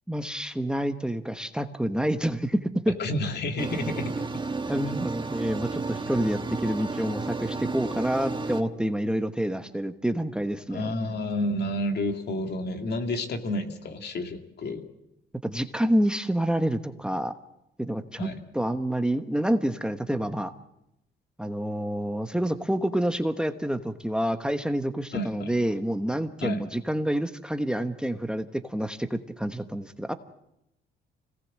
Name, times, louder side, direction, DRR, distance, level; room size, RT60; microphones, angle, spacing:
voice 1, 0.1-3.0 4.7-10.9 15.4-17.3 17.8-18.3 18.5-20.5 21.4-30.1, right 1 dB, 5° right, 9 dB, 1.1 m, -28 dB
voice 2, 3.0-4.1 10.7-14.9 18.2-18.4 25.1-25.5 26.4-26.6, left 1 dB, 55° left, 5 dB, 2.5 m, -30 dB
sound 1, 3.6-8.6, right 3 dB, 25° right, 1.5 m, -32 dB
26.0 x 18.5 x 7.5 m, 0.84 s
cardioid pair, 90°, 20 cm